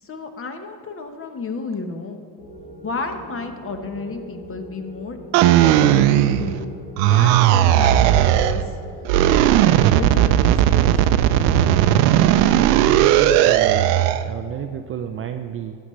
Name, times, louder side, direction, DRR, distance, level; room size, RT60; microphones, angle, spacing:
voice 1, 0.0-2.2 2.8-6.0 6.4-6.7 7.1-8.8 9.9-11.1, left 3 dB, 25° left, 6 dB, 1.1 m, -32 dB
sound 1, 2.4-10.3, right 1 dB, 85° left, 2.7 m, -41 dB
sound 2, 5.3-6.6 7.0-8.6 9.1-14.2, right 12 dB, 80° right, 0.6 m, -16 dB
voice 2, 12.1-13.9 14.2-15.8, right 9 dB, 30° right, 6 dB, 0.4 m, -31 dB
13.5 x 9.3 x 3.2 m, 2.3 s
supercardioid pair, 85°, 48 cm